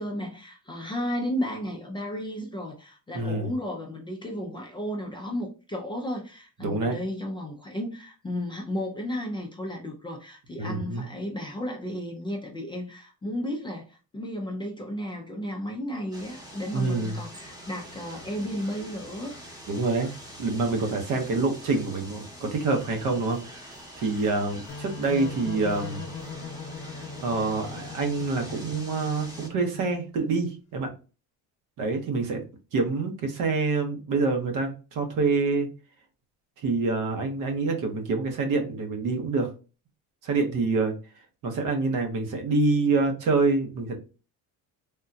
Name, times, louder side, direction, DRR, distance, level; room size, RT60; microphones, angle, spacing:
voice 1, 0.0-19.4, equal, 15° left, 0.4 m, -33 dB
voice 2, 3.1-3.5 6.6-7.0 10.6-11.0 16.7-17.2 19.7-20.1 20.4-26.0 27.2-30.9 31.8-32.4 32.7-35.7 36.6-39.5 40.2-40.9 41.4-44.0, right 3 dB, 60° right, 0.9 m, -26 dB
sound 1, 16.1-29.5, equal, 10° right, 0.9 m, -45 dB
sound 2, 24.7-30.2, left 4 dB, 40° left, 0.8 m, -40 dB
3.6 x 2.2 x 2.6 m
cardioid pair, 150°, 36 cm